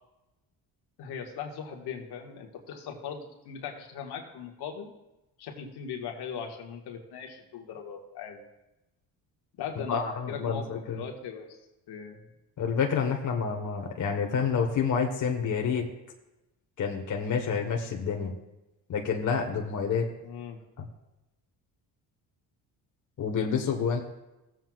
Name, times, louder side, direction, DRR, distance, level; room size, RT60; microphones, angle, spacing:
voice 1, 1.0-4.9 5.4-8.4 9.6-11.6 11.9-12.2 20.2-20.6, left 7 dB, 75° left, 2 dB, 1.7 m, -39 dB
voice 2, 9.9-11.0 12.6-15.8 16.8-18.3 18.9-20.0 20.8-20.9 23.2-24.0, left 6 dB, 50° left, 2 dB, 1.3 m, -28 dB
17.5 x 7.6 x 2.4 m, 0.98 s
cardioid pair, 95°, 39 cm